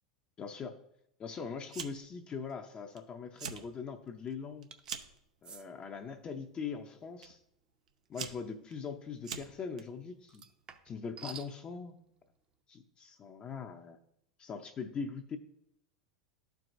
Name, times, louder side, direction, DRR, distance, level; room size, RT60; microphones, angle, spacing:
voice 1, 0.4-0.8 1.2-4.7 5.4-7.4 8.1-10.5 10.8-11.9 12.7-14.0 14.4-15.4, left 5 dB, 30° left, 4 dB, 0.6 m, -41 dB
Fire, 1.7-2.2 2.5-3.0 3.3-3.7 4.1-5.2 6.0-6.3 7.2-7.3 7.9-9.8, right 7 dB, 80° right, 0.6 m, -43 dB
sound 1, 4.7-5.0 5.4-5.7 8.2-8.4 10.3-11.5, right 6 dB, 25° right, 0.7 m, -49 dB
12.0 x 4.6 x 2.6 m, 0.73 s
hypercardioid pair, 90°, 4 cm